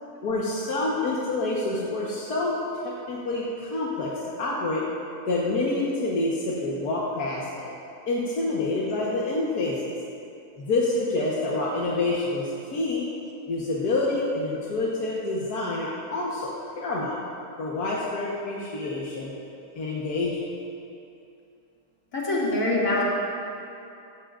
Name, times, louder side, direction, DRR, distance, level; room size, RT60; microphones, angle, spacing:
voice 1, 0.2-4.9 5.3-7.7 8.1-9.8 10.6-13.1 13.5-17.2 17.6-19.3 19.7-20.4, left 2 dB, 85° left, -5 dB, 1.9 m, -27 dB
voice 2, 22.1-23.0, left 2 dB, 60° left, -6 dB, 3.1 m, -24 dB
16.0 x 14.5 x 2.5 m, 2.6 s
omnidirectional pair, 1.6 m